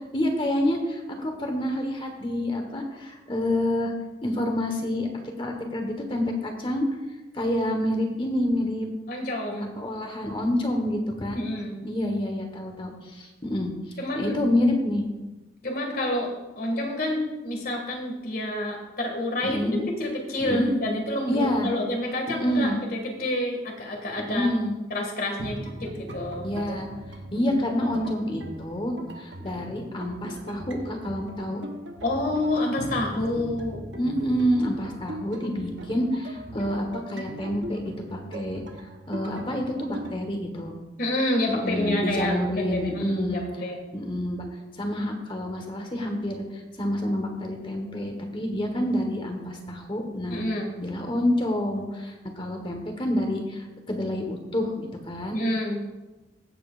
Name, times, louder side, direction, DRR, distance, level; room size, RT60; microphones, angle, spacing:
voice 1, 0.1-3.9 4.2-5.1 5.4-6.8 7.3-8.9 9.8-11.4 11.8-13.7 14.1-15.0 19.4-19.8 20.4-20.7 21.3-21.7 22.4-22.8 24.3-24.7 26.4-26.9 27.3-31.6 34.0-38.6 39.1-40.8 41.5-43.4 43.9-44.5 44.8-46.4 46.8-50.4 50.8-55.4, left 1 dB, 30° left, 3 dB, 1.3 m, -28 dB
voice 2, 9.1-9.7 11.3-11.7 14.0-14.4 15.6-16.3 16.6-19.6 19.9-24.5 24.9-26.5 32.0-33.8 41.0-43.9 50.3-50.7 55.3-55.8, left 1 dB, 55° left, 1 dB, 2.1 m, -28 dB
sound 1, 25.4-40.2, right 1 dB, 80° right, 1.0 m, -39 dB
16.0 x 7.7 x 2.5 m, 1.1 s
head